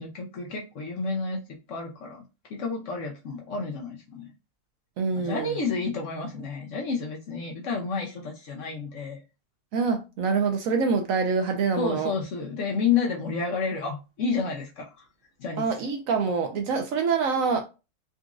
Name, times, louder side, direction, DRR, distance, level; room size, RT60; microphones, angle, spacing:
voice 1, 0.0-2.2 2.5-4.3 5.2-9.2 11.8-15.1 15.4-15.7, left 5 dB, 65° left, 0.8 m, -30 dB
voice 2, 5.0-5.6 9.7-12.1 15.6-17.7, right 5 dB, 70° right, 0.9 m, -25 dB
3.9 x 2.4 x 2.4 m
omnidirectional pair, 1.7 m